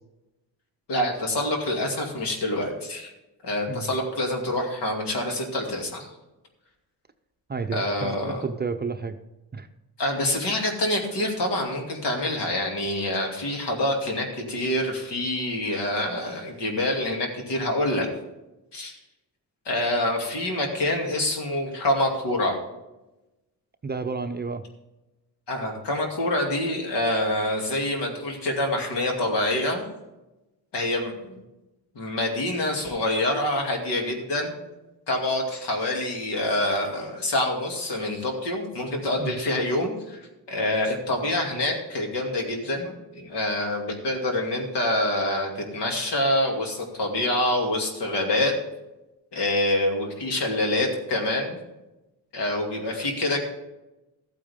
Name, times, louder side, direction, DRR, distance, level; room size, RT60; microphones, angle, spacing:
voice 1, 0.9-3.1 3.4-6.1 7.7-8.4 10.0-18.1 18.7-19.0 19.7-22.6 25.5-29.9 30.7-31.4 32.0-34.6 35.1-40.2 40.5-48.5 49.3-51.6 52.3-53.4, left 1 dB, 75° left, 1 dB, 2.6 m, -26 dB
voice 2, 7.5-9.2 9.5-9.7 23.8-24.6 39.2-39.4, right 4 dB, 25° right, 7 dB, 0.6 m, -31 dB
14.0 x 8.7 x 3.6 m, 0.99 s
cardioid pair, 110°, 41 cm